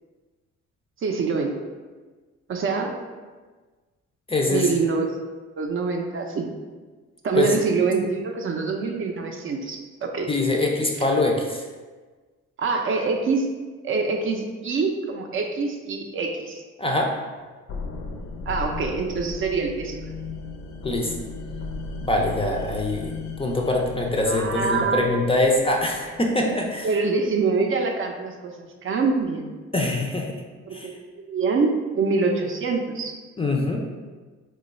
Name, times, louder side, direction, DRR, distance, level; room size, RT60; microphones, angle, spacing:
voice 1, 1.0-1.6 2.5-2.9 4.5-5.2 5.6-6.5 7.2-10.3 11.0-11.1 12.6-13.5 13.8-16.6 18.5-20.0 24.3-25.1 26.8-29.5 30.7-33.2, right 4 dB, 45° right, 3 dB, 0.4 m, -25 dB
voice 2, 4.3-4.8 7.3-7.6 10.3-11.6 16.8-17.2 20.8-21.1 22.0-26.9 29.7-30.3 30.7-30.9 33.4-33.8, left 2 dB, 20° left, 1 dB, 0.4 m, -23 dB
sound 1, 17.7-26.5, left 3 dB, 70° left, 0.5 m, -36 dB
3.0 x 2.2 x 4.0 m, 1.4 s
cardioid pair, 90°, 30 cm